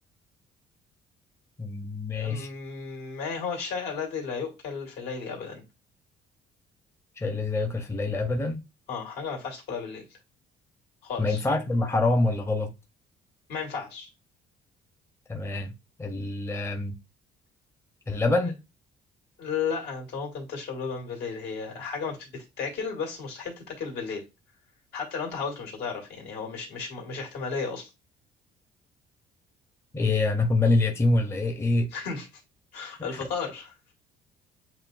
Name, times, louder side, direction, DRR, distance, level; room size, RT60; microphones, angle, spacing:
voice 1, 1.6-2.5 7.2-8.6 11.2-12.7 15.3-15.7 16.0-17.0 18.1-18.6 29.9-31.9 33.1-33.2, left 2 dB, 15° left, 0.7 m, -25 dB
voice 2, 2.1-5.6 8.9-10.0 11.0-11.4 13.5-14.1 19.4-22.3 22.6-24.2 24.9-27.9 31.9-32.3 32.7-33.7, left 5 dB, 75° left, 2.2 m, -34 dB
7.6 x 2.6 x 2.5 m
cardioid pair, 110°, 17 cm